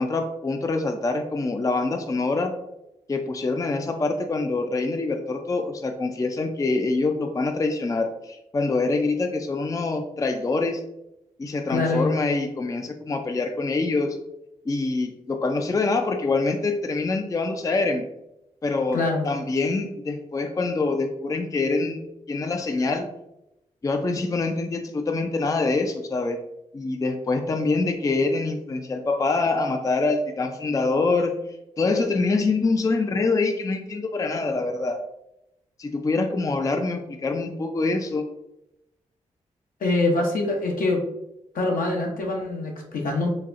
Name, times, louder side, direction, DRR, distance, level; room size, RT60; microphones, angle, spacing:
voice 1, 0.0-2.5 3.1-10.8 11.4-14.2 14.7-18.1 18.6-23.1 23.8-26.4 26.7-31.4 31.8-35.0 35.8-38.2, left 3 dB, 25° left, 5 dB, 0.4 m, -25 dB
voice 2, 11.7-12.1 18.9-19.2 39.8-41.0 41.5-43.3, left 2 dB, 70° left, 0 dB, 0.8 m, -24 dB
4.0 x 2.3 x 2.5 m, 0.86 s
supercardioid pair, 40°, 15 cm